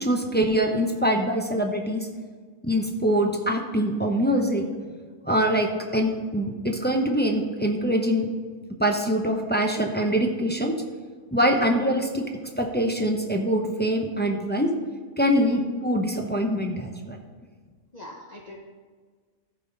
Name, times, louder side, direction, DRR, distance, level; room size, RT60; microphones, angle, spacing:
voice 1, 0.0-2.1 2.6-4.6 5.2-8.3 8.8-10.7 11.3-12.2 12.6-14.7 15.2-17.2, equal, 10° left, 2 dB, 0.5 m, -24 dB
voice 2, 17.9-18.6, left 2 dB, 35° left, -1 dB, 0.9 m, -41 dB
14.0 x 5.5 x 4.0 m, 1.5 s
omnidirectional pair, 1.4 m